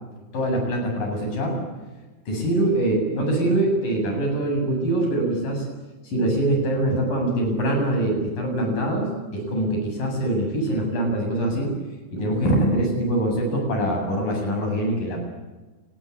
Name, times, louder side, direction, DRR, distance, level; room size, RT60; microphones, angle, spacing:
voice 1, 0.3-1.6 2.3-5.7 6.0-11.8 12.1-15.3, right 1 dB, 45° left, 2 dB, 9.1 m, -23 dB
30.0 x 20.5 x 8.5 m, 1.2 s
omnidirectional pair, 5.6 m